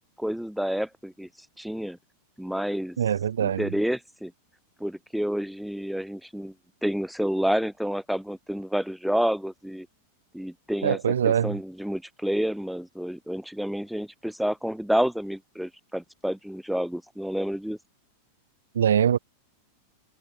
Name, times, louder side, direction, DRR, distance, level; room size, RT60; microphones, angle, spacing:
voice 1, 0.2-1.3 1.6-2.0 2.4-3.0 3.4-4.3 4.8-6.5 6.8-9.9 10.3-11.0 11.2-17.8, equal, ahead, 2.1 m, -29 dB
voice 2, 3.0-3.7 10.8-11.6 18.7-19.2, right 9 dB, 65° right, 2.6 m, -23 dB
figure-of-eight pair, 90°, 0 cm